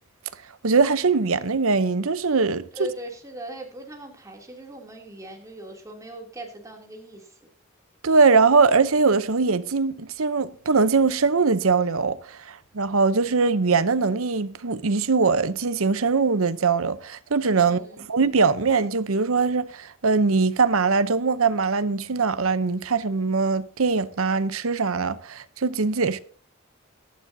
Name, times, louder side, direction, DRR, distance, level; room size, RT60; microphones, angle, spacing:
voice 1, 0.6-2.7 8.0-26.2, right 4 dB, 75° right, 0.8 m, -22 dB
voice 2, 2.7-7.4 17.6-18.1, right 2 dB, 15° right, 3.0 m, -39 dB
18.0 x 12.0 x 2.8 m
head